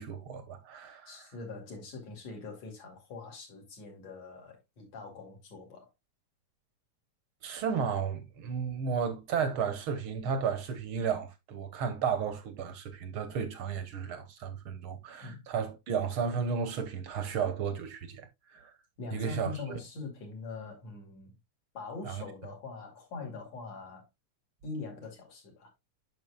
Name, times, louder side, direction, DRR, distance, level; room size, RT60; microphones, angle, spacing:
voice 1, 0.0-1.3 7.4-18.7 19.1-19.5 22.0-22.2, right 6 dB, 60° right, 1.4 m, -33 dB
voice 2, 1.1-5.9 15.2-15.4 19.0-21.3 21.7-24.1 24.6-25.7, left 3 dB, 65° left, 3.5 m, -43 dB
9.1 x 6.6 x 2.2 m
omnidirectional pair, 3.4 m